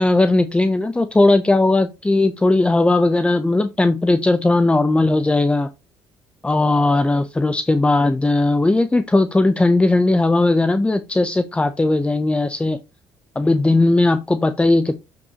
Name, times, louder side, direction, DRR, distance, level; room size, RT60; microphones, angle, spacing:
voice 1, 0.0-5.7 6.4-12.8 13.4-15.0, left 2 dB, 10° left, 0.6 m, -17 dB
7.8 x 5.5 x 2.9 m
supercardioid pair, 70°, 9 cm